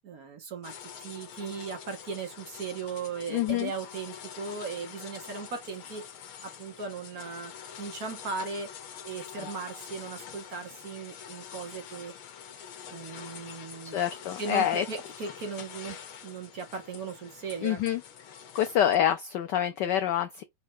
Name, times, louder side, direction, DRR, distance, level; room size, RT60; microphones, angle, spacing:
voice 1, 0.0-6.0 6.4-7.5 7.8-8.7 9.0-12.1 12.9-14.0 14.4-16.0 16.2-17.8, right 5 dB, 55° right, 1.1 m, -37 dB
sound 1, 0.6-19.0, left 8 dB, 75° left, 1.6 m, -45 dB
voice 2, 3.3-3.7 13.9-14.8 17.6-18.0 18.5-20.4, left 10 dB, 90° left, 0.9 m, -26 dB
4.3 x 2.3 x 4.7 m
omnidirectional pair, 2.4 m